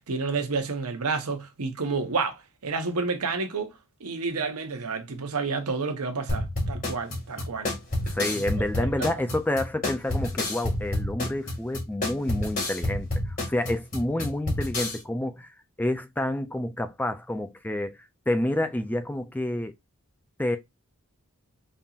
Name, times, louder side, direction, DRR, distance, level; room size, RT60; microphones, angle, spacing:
voice 1, 0.0-3.7 4.0-7.7 8.3-8.4 9.0-9.1, right 4 dB, 85° right, 0.9 m, -30 dB
sound 1, 6.3-15.0, left 1 dB, 40° left, 1.7 m, -29 dB
voice 2, 8.1-15.5 15.8-18.0 18.3-19.7 20.4-20.6, left 1 dB, 10° left, 0.3 m, -29 dB
5.3 x 2.8 x 2.4 m
head